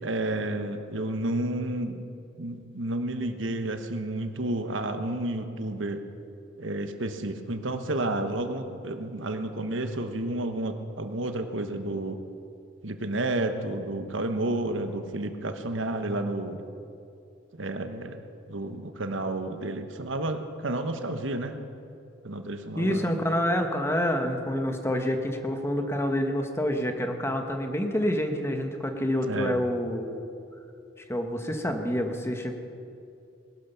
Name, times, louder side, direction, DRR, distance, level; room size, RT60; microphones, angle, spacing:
voice 1, 0.0-2.0 2.4-6.0 6.6-12.2 12.8-16.6 17.5-18.2 18.5-21.6 22.2-23.1 29.3-29.6, right 2 dB, 80° right, 7 dB, 1.2 m, -31 dB
voice 2, 22.8-30.2 31.1-32.5, equal, 15° left, 5 dB, 1.2 m, -27 dB
20.0 x 12.0 x 5.7 m, 2.6 s
head